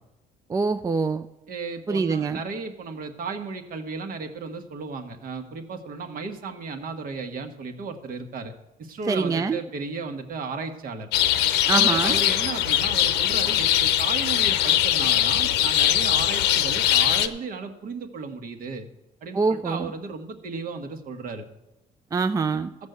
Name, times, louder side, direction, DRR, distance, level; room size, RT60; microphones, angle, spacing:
voice 1, 0.5-1.3 1.9-2.4 9.1-9.6 11.7-12.2 19.3-19.9 22.1-22.7, right 4 dB, 20° right, 10 dB, 0.4 m, -24 dB
voice 2, 1.5-8.5 8.8-11.1 11.7-18.9 19.2-21.4, right 4 dB, 55° right, 6 dB, 1.4 m, -34 dB
sound 1, 11.1-17.3, left 12 dB, 90° left, 0.7 m, -21 dB
14.0 x 5.4 x 8.0 m, 0.94 s
cardioid pair, 110°, 17 cm